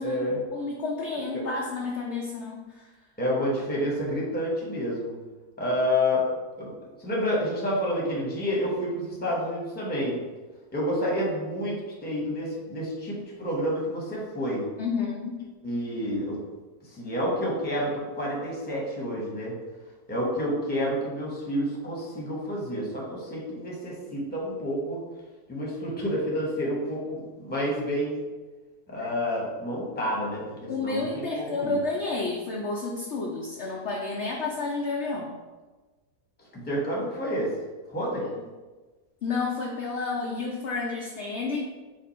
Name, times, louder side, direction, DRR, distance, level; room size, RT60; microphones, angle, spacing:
voice 1, 0.0-0.4 1.3-1.4 3.2-5.1 5.6-6.2 6.6-6.7 7.0-10.2 10.7-14.6 15.6-16.4 16.9-19.5 20.1-25.0 25.5-28.2 28.9-31.8 36.5-37.5 37.9-38.3, equal, 10° left, -4 dB, 0.9 m, -29 dB
voice 2, 0.5-2.9 14.8-15.4 29.0-29.1 30.7-35.3 39.2-41.6, left 3 dB, 65° left, -1 dB, 0.7 m, -30 dB
5.0 x 2.5 x 4.2 m, 1.2 s
omnidirectional pair, 1.7 m